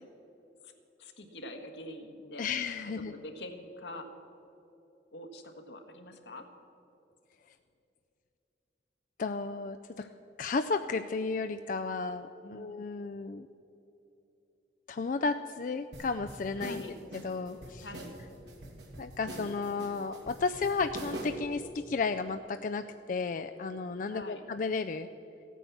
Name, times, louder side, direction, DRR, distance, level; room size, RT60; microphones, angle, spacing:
voice 1, 1.0-2.5 2.8-4.1 5.1-6.5 10.0-10.1 12.4-12.7 16.6-16.9 17.8-18.1 24.1-24.5, left 1 dB, 85° left, 5 dB, 1.5 m, -45 dB
voice 2, 2.4-3.1 9.2-9.8 10.4-13.5 14.9-16.9 17.2-17.9 19.0-22.8 23.1-25.1, left 4 dB, 50° left, 8 dB, 0.4 m, -33 dB
sound 1, 15.9-21.5, right 1 dB, 85° right, 2.3 m, -44 dB
15.0 x 9.2 x 7.1 m, 3.0 s
head